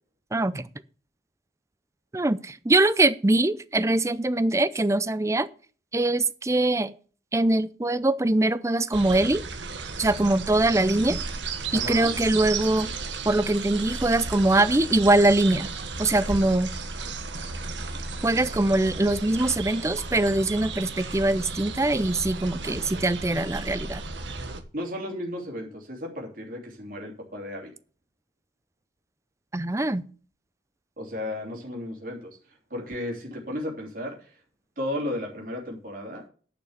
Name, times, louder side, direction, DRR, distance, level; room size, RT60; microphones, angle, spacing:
voice 1, 0.3-0.7 2.1-5.5 5.9-6.9 7.3-9.4 10.0-11.2 11.7-12.9 13.3-15.7 16.0-16.7 18.2-24.0 29.5-30.0, right 2 dB, 15° right, 15 dB, 0.5 m, -23 dB
sound 1, 8.9-24.6, right 4 dB, 85° right, 1.4 m, -34 dB
voice 2, 11.7-12.1 24.7-27.7 31.0-32.4 32.7-34.4 34.8-36.2, left 1 dB, 50° right, -1 dB, 3.4 m, -34 dB
10.5 x 6.1 x 6.5 m, 0.41 s
head